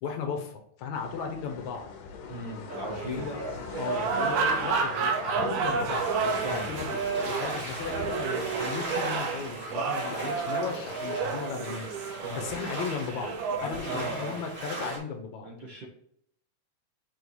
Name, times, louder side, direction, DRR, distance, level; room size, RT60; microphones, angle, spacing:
voice 1, 0.0-1.9 3.1-11.9 12.3-13.3 13.6-15.5, left 5 dB, 70° left, 4 dB, 2.1 m, -36 dB
sound 1, 0.9-9.5, left 6 dB, 85° left, 2.7 m, -42 dB
voice 2, 2.3-3.3 6.4-6.7 12.2-12.4 13.5-14.4 15.4-15.8, right 1 dB, 65° right, -1 dB, 1.2 m, -37 dB
sound 2, 2.7-13.6, right 5 dB, 80° right, 2.4 m, -31 dB
sound 3, 5.9-15.0, right 2 dB, 25° right, 1.6 m, -38 dB
6.9 x 4.5 x 4.6 m, 0.68 s
omnidirectional pair, 3.8 m